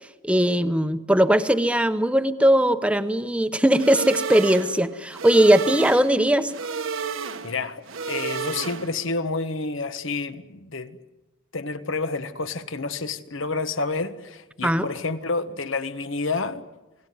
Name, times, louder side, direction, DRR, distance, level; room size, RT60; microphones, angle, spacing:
voice 1, 0.2-6.5 14.6-14.9, right 1 dB, 5° right, 0.9 m, -19 dB
sound 1, 3.7-9.1, right 5 dB, 80° right, 1.4 m, -32 dB
voice 2, 7.4-7.8 8.1-11.0 11.5-16.6, left 3 dB, 70° left, 1.4 m, -29 dB
28.5 x 18.5 x 9.5 m
head